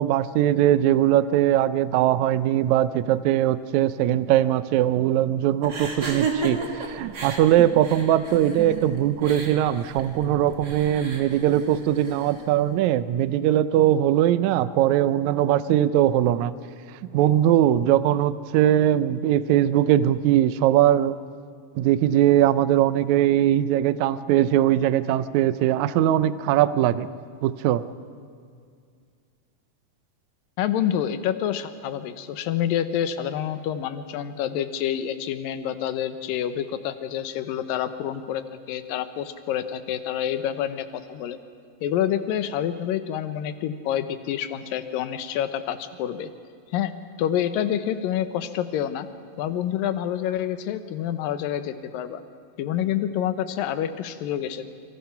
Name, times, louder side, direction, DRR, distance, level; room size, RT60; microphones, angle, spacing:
voice 1, 0.0-16.5 17.1-21.2 21.8-27.1 27.4-27.8, right 12 dB, 75° right, 14 dB, 1.8 m, -21 dB
sound 1, 5.6-12.4, right 3 dB, 35° right, 2.5 m, -33 dB
voice 2, 30.6-38.4 38.7-41.4 41.8-46.3 46.7-49.1 49.4-52.2 52.6-54.7, left 10 dB, 90° left, 11 dB, 2.7 m, -27 dB
27.5 x 24.5 x 5.8 m, 2.2 s
omnidirectional pair, 3.9 m